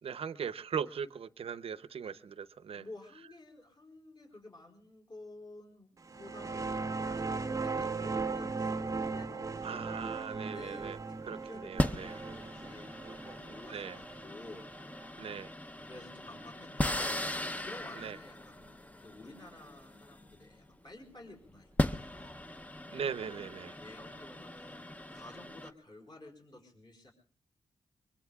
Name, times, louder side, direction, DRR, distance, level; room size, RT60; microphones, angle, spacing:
voice 1, 0.0-2.8 9.6-11.0 11.2-12.2 13.7-14.0 15.2-15.5 18.0-18.2 22.9-23.8, right 7 dB, 65° right, 15 dB, 0.7 m, -39 dB
voice 2, 2.7-9.9 10.5-14.7 15.8-18.7 19.0-22.4 23.8-27.1, left 2 dB, 40° left, 2 dB, 4.7 m, -52 dB
sound 1, 6.1-15.4, right 4 dB, 30° right, 0.7 m, -37 dB
sound 2, 10.6-10.8 11.8-20.8 21.5-25.7, left 1 dB, 15° left, 0.8 m, -38 dB
24.0 x 23.5 x 2.4 m, 0.39 s
cardioid pair, 90°, 11 cm